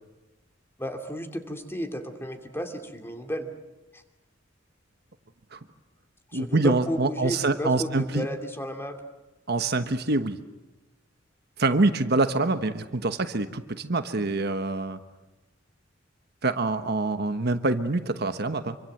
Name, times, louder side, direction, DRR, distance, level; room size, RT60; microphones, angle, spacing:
voice 1, 0.8-3.5 3.9-4.0 6.3-9.0, equal, 10° left, 5 dB, 2.7 m, -33 dB
voice 2, 6.3-8.3 9.5-10.4 11.6-15.0 16.4-18.8, right 2 dB, 55° right, 9 dB, 1.2 m, -25 dB
27.0 x 24.5 x 7.9 m, 1.1 s
head